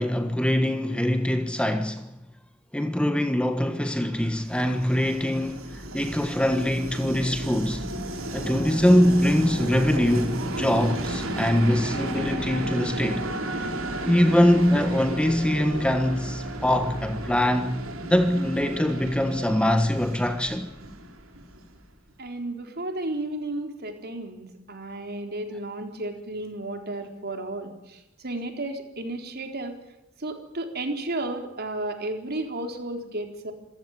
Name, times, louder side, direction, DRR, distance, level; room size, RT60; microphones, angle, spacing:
voice 1, 0.0-2.0 2.7-7.8 8.3-13.2 14.1-17.7 18.0-20.7, left 1 dB, 5° left, 1.4 m, -23 dB
Train, 4.2-21.9, right 1 dB, 80° right, 4.1 m, -33 dB
voice 2, 22.2-28.0 28.2-29.8 30.2-33.5, right 2 dB, 50° right, 3.9 m, -33 dB
27.5 x 15.5 x 9.5 m
head